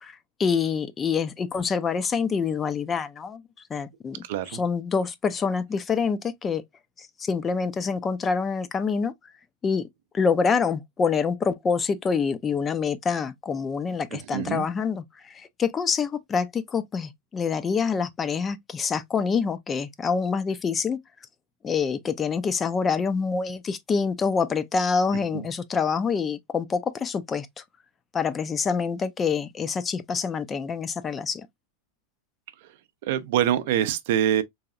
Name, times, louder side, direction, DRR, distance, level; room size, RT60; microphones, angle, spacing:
voice 1, 0.0-3.4 3.7-4.2 4.5-6.6 7.0-9.1 9.6-9.9 10.1-21.0 21.6-27.5 28.1-31.5, left 5 dB, 20° left, 0.4 m, -26 dB
voice 2, 4.2-4.6 14.1-14.6 25.3-25.5 33.0-34.4, right 11 dB, 50° right, 0.4 m, -25 dB
4.0 x 2.6 x 2.4 m
figure-of-eight pair, 90°, 0 cm